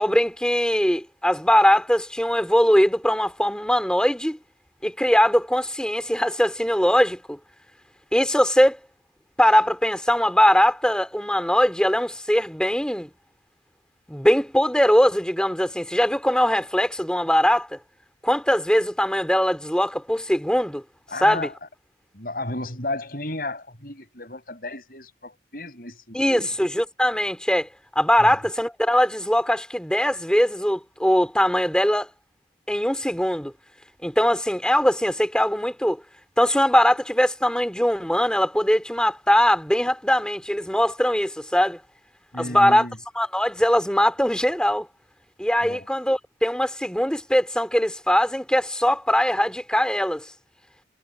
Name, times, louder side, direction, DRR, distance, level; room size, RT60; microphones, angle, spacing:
voice 1, 0.0-4.4 4.8-7.4 8.1-8.8 9.4-13.1 14.1-17.8 18.2-20.8 21.2-21.5 26.1-27.7 28.0-32.1 32.7-33.5 34.0-36.0 36.4-41.8 42.4-42.9 43.2-44.9 45.4-50.3, equal, 5° left, 4.1 m, -21 dB
voice 2, 21.1-21.5 22.1-26.5 28.2-28.3 42.3-43.0 45.6-45.9, left 2 dB, 50° left, 7.1 m, -33 dB
head